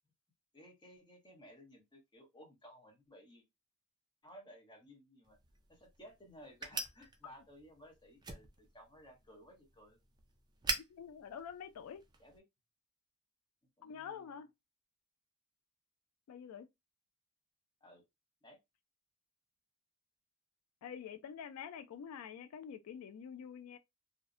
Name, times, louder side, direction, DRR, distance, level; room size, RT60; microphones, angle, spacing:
voice 1, 0.5-3.4 4.2-5.4 5.7-10.0 12.2-12.4 13.8-14.4 17.8-18.0 18.4-18.6, equal, 20° left, 0.8 m, -57 dB
sound 1, 5.2-12.4, right 3 dB, 20° right, 0.3 m, -45 dB
voice 2, 10.9-12.0 13.8-14.5 16.3-16.7 20.8-23.8, left 7 dB, 80° left, 0.3 m, -47 dB
2.5 x 2.0 x 2.4 m
head